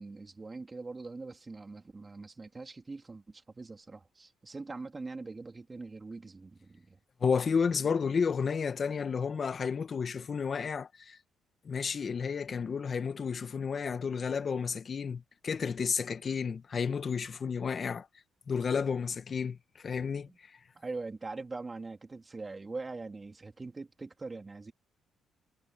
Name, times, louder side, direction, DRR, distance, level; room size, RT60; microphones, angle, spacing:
voice 1, 0.0-7.0 20.2-20.4 20.7-24.7, right 3 dB, 25° right, 3.4 m, -42 dB
voice 2, 7.2-11.2 11.6-18.1 18.5-20.3, left 6 dB, 45° left, 1.5 m, -31 dB
cardioid pair, 90°, 0 cm